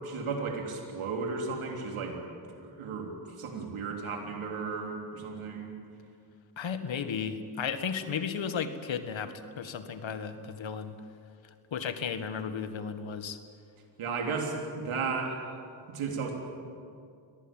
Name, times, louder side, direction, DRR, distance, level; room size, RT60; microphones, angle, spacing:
voice 1, 0.0-2.2 2.5-5.8 14.0-15.6 15.9-16.3, right 4 dB, 85° right, 2 dB, 3.4 m, -34 dB
voice 2, 6.6-11.0 11.7-13.4, left 6 dB, 70° left, 10 dB, 1.8 m, -34 dB
23.5 x 18.5 x 9.0 m, 2.4 s
cardioid pair, 50°, 48 cm